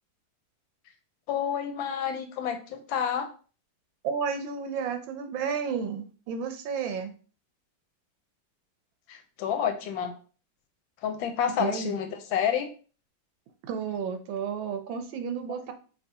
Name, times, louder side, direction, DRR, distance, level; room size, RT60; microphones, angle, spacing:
voice 1, 1.3-3.3 9.1-10.1 11.0-12.7, left 8 dB, 90° left, 7 dB, 1.5 m, -29 dB
voice 2, 4.0-7.1 11.6-11.9 13.7-15.7, right 6 dB, 85° right, 7 dB, 1.5 m, -32 dB
4.9 x 3.4 x 2.7 m, 0.38 s
omnidirectional pair, 2.1 m